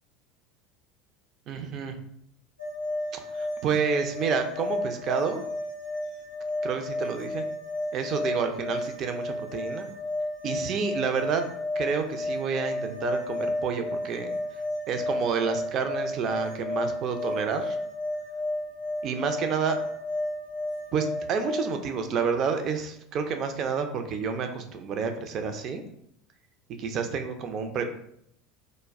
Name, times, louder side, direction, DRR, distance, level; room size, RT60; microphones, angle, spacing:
voice 1, 1.5-2.0 3.1-5.4 6.6-7.4 7.9-9.9 10.4-11.4 11.8-14.4 14.9-17.8 19.0-19.8 20.9-25.8 26.8-27.9, right 6 dB, 45° right, 6 dB, 0.4 m, -29 dB
sound 1, 2.6-21.8, left 1 dB, 85° right, 0.7 m, -32 dB
2.2 x 2.0 x 3.4 m, 0.71 s
figure-of-eight pair, 70°, 0 cm